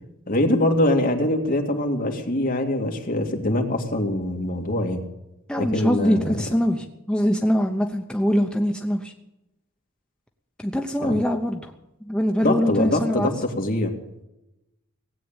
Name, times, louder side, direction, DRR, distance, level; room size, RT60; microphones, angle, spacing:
voice 1, 0.3-5.1 5.6-6.4 11.0-11.2 12.4-13.9, left 1 dB, 45° left, 2 dB, 2.3 m, -23 dB
voice 2, 5.5-9.1 10.6-11.7 12.0-13.3, equal, 5° left, 3 dB, 0.8 m, -23 dB
17.5 x 8.6 x 8.8 m, 0.92 s
head